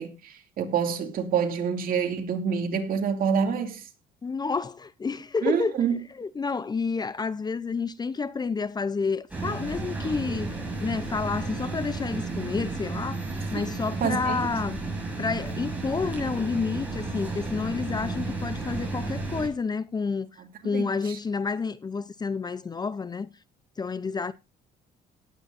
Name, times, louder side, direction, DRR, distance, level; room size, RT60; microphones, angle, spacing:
voice 1, 0.0-3.9 5.4-6.0 13.5-13.6 14.0-14.5 20.4-21.2, right 7 dB, 60° right, 2.6 m, -27 dB
voice 2, 4.2-5.8 6.2-13.2 13.5-14.8 15.2-23.3 23.8-24.3, left 4 dB, 25° left, 0.7 m, -30 dB
sound 1, 9.3-19.5, right 3 dB, 10° right, 6.6 m, -33 dB
18.5 x 9.1 x 2.7 m
cardioid pair, 110°, 17 cm